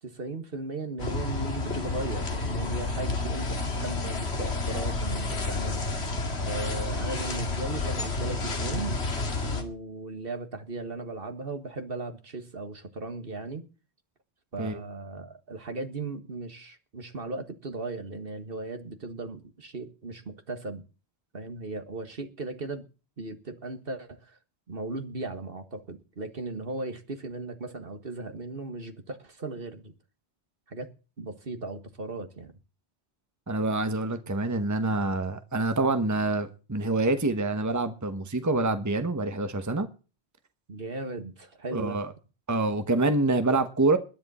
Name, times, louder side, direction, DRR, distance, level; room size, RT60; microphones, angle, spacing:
voice 1, 0.0-5.8 6.4-9.0 9.5-13.6 14.5-20.8 21.3-22.8 23.2-24.4 24.7-29.9 30.7-30.9 31.2-32.5 40.7-42.0, right 3 dB, 60° right, 1.8 m, -37 dB
sound 1, 1.0-9.6, left 3 dB, 80° left, 2.3 m, -30 dB
voice 2, 33.5-39.9 41.7-42.1 42.5-44.0, right 2 dB, 15° right, 1.1 m, -26 dB
20.5 x 10.5 x 4.2 m
omnidirectional pair, 1.1 m